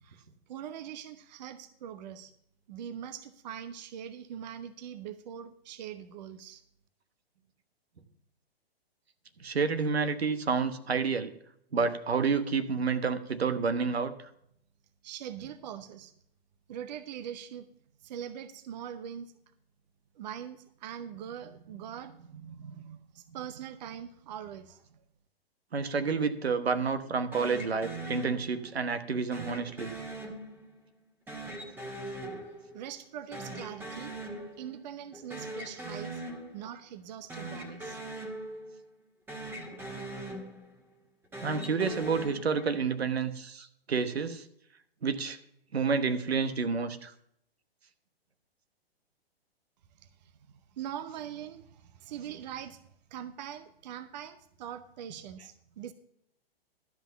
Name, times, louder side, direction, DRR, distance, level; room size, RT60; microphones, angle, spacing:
voice 1, 0.0-2.3 2.7-6.6 15.0-16.1 16.7-17.7 18.0-19.3 20.1-25.0 32.7-34.2 34.6-36.2 36.5-38.0 50.2-50.3 50.7-52.8 53.1-55.9, right 9 dB, 45° right, 12 dB, 0.7 m, -42 dB
voice 2, 9.4-11.3 11.7-14.1 25.7-29.9 41.4-44.4 45.0-45.4 45.7-47.1, right 5 dB, 75° right, 10 dB, 1.1 m, -29 dB
sound 1, 27.3-28.8 29.3-30.9 31.3-33.1 33.3-34.8 35.1-36.8 37.2-39.0 39.3-40.9 41.2-43.0, right 1 dB, 5° right, 1.5 m, -41 dB
12.0 x 5.5 x 6.7 m, 0.73 s
figure-of-eight pair, 125°, 31 cm